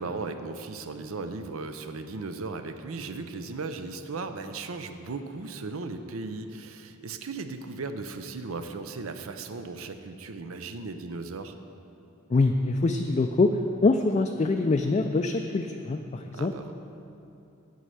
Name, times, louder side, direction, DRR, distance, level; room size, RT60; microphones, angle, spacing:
voice 1, 0.0-11.6 16.3-16.7, right 3 dB, 85° right, 8 dB, 0.6 m, -36 dB
voice 2, 12.3-16.5, left 3 dB, 30° left, 5 dB, 0.3 m, -24 dB
9.3 x 5.5 x 7.9 m, 2.7 s
head